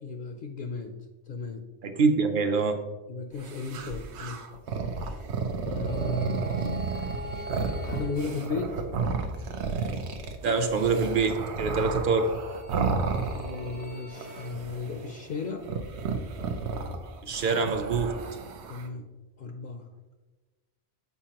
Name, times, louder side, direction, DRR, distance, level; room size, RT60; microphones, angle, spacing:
voice 1, 0.0-1.0 1.3-1.6 3.1-4.4 5.6-6.5 7.8-8.9 12.7-15.6 18.7-19.1 19.4-19.9, left 4 dB, 60° left, 4 dB, 0.6 m, -35 dB
voice 2, 1.8-2.8 10.4-12.3 17.2-18.1, right 4 dB, 55° right, 6 dB, 0.8 m, -25 dB
sound 1, 3.4-13.9 14.1-15.1 15.6-18.9, right 4 dB, 90° right, 0.9 m, -32 dB
sound 2, 5.9-9.1 11.9-14.5, right 1 dB, 85° left, 1.3 m, -42 dB
7.0 x 4.7 x 2.9 m, 1.2 s
omnidirectional pair, 1.1 m